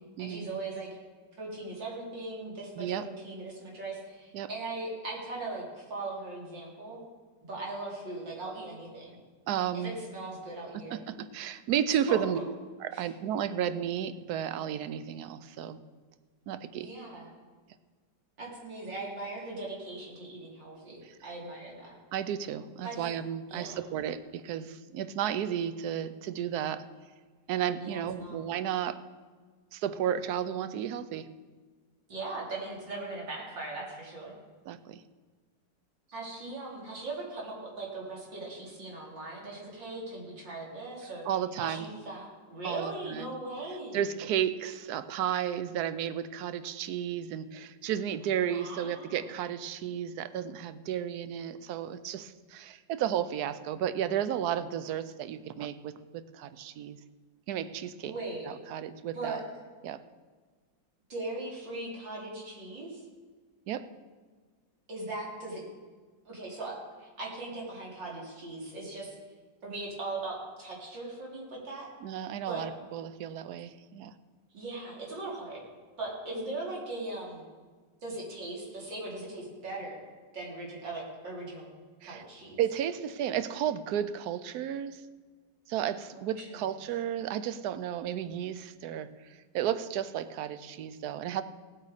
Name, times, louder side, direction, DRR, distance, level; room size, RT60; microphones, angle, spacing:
voice 1, 0.2-0.9 1.4-7.0 7.4-9.2 9.8-11.0 12.1-12.4 12.9-13.1 16.8-17.3 18.4-21.9 22.8-23.1 23.5-23.8 27.8-28.4 32.1-34.4 36.1-41.3 41.6-44.1 48.5-49.2 58.0-58.6 59.1-59.4 61.1-63.0 64.9-65.6 66.3-69.2 69.6-71.9 72.5-72.7 74.5-75.6 76.0-77.4 78.0-80.0 80.3-81.7 82.0-82.6 85.8-86.6, right 2 dB, 85° right, -3 dB, 3.7 m, -39 dB
voice 2, 2.8-3.1 4.3-4.5 9.5-9.9 10.9-12.4 12.8-15.8 16.5-16.9 21.0-21.2 22.1-26.8 27.5-29.0 29.7-31.3 34.7-35.0 41.3-41.9 42.6-43.3 43.9-57.0 57.5-58.1 58.5-59.4 59.8-60.0 63.7-63.9 72.0-74.1 82.0-82.2 82.6-85.0 85.7-91.4, right 10 dB, 65° right, 13 dB, 1.1 m, -33 dB
17.0 x 8.2 x 4.9 m, 1.4 s
omnidirectional pair, 2.0 m